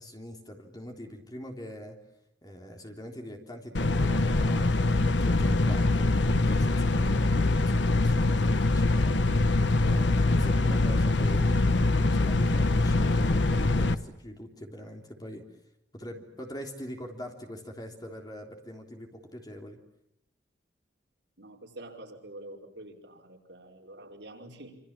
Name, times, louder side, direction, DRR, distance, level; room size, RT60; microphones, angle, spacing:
voice 1, 0.0-2.0 2.4-7.3 7.6-9.2 9.8-11.7 12.1-15.5 15.9-19.8, equal, 20° left, 3 dB, 3.5 m, -43 dB
sound 1, 3.7-13.9, left 2 dB, 75° left, 1.1 m, -24 dB
voice 2, 21.4-24.8, right 1 dB, 70° right, 0 dB, 5.2 m, -46 dB
27.0 x 27.0 x 7.5 m, 0.79 s
head